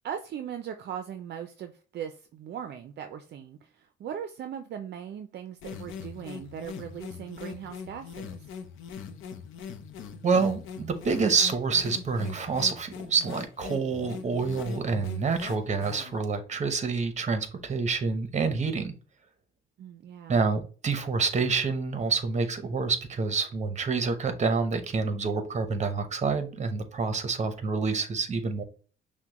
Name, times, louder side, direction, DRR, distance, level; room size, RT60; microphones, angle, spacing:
voice 1, 0.0-8.4 19.8-20.4, right 9 dB, 60° right, 7 dB, 0.4 m, -39 dB
sound 1, 5.6-16.2, left 7 dB, 80° left, 0.6 m, -41 dB
voice 2, 10.2-18.9 20.3-28.6, right 4 dB, 35° right, 9 dB, 0.8 m, -27 dB
5.8 x 2.2 x 2.9 m, 0.38 s
cardioid pair, 90°, 20 cm